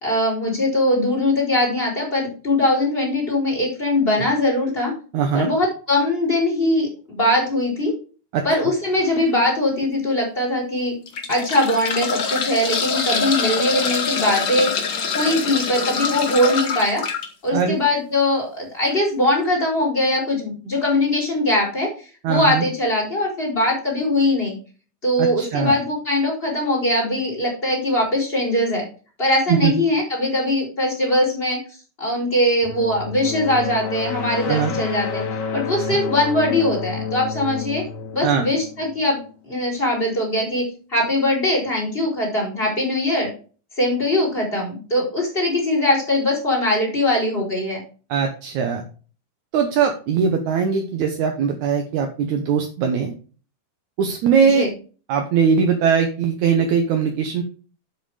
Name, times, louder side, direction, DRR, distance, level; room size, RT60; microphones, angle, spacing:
voice 1, 0.0-4.9 5.3-7.9 8.4-10.9 11.3-14.7 15.1-17.0 17.4-21.9 22.3-24.6 25.0-28.8 29.2-31.6 32.0-35.2 35.5-37.8 38.1-39.2 39.4-40.6 40.9-43.3 43.8-47.8 54.4-54.7, left 1 dB, 15° left, -1 dB, 4.5 m, -21 dB
voice 2, 5.1-5.5 8.3-8.4 17.5-17.8 22.2-22.7 25.2-25.7 29.5-29.7 34.5-34.7 35.9-36.0 38.2-38.5 48.1-48.8 49.5-53.1 54.0-54.7 55.1-57.4, right 6 dB, 65° right, 4 dB, 2.0 m, -20 dB
sound 1, 8.9-9.2 9.8-9.9 10.9-17.3 18.9-19.0 19.2-19.3, left 5 dB, 65° left, 1.1 m, -24 dB
sound 2, 32.6-39.3, left 5 dB, 85° left, 3.7 m, -29 dB
8.0 x 7.9 x 4.9 m, 0.38 s
omnidirectional pair, 4.4 m